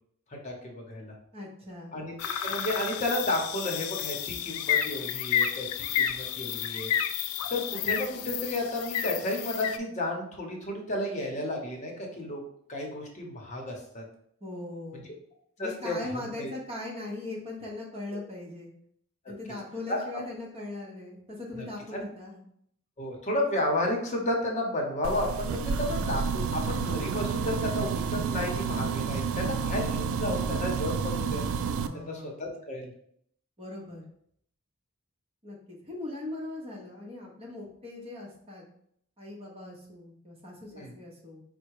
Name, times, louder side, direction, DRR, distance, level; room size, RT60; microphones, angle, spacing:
voice 1, 0.3-1.1 1.9-2.2 2.4-5.7 5.9-6.9 7.5-12.4 12.7-14.0 14.9-15.0 15.6-16.5 18.1-18.2 19.9-20.0 21.6-21.7 21.9-22.0 23.0-31.4 31.9-32.9 40.7-40.9, left 1 dB, 30° left, 0 dB, 0.9 m, -32 dB
voice 2, 1.3-1.9 14.4-15.1 15.6-18.7 19.3-22.4 31.7-32.6 33.6-34.0 35.4-38.6 39.2-41.4, left 2 dB, 25° right, -2 dB, 1.1 m, -40 dB
sound 1, 2.2-9.8, left 9 dB, 80° left, 0.3 m, -31 dB
sound 2, 25.0-31.9, right 5 dB, 65° right, 0.3 m, -30 dB
4.5 x 2.2 x 4.7 m, 0.69 s
head